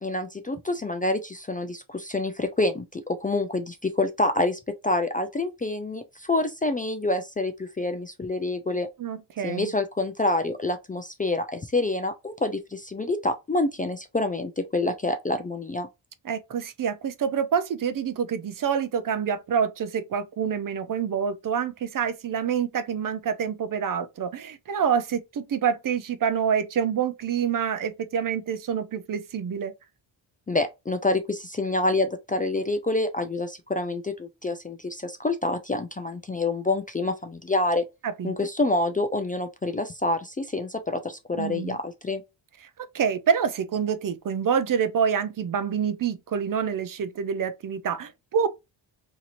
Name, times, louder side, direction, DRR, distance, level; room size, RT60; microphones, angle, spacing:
voice 1, 0.0-8.9 9.4-15.9 30.5-37.8 38.2-42.2, left 2 dB, 20° left, 0.3 m, -27 dB
voice 2, 9.0-9.7 16.2-29.7 38.0-38.3 41.4-41.8 42.8-48.5, right 7 dB, 45° right, 0.5 m, -27 dB
2.8 x 2.5 x 2.8 m
cardioid pair, 75°, 47 cm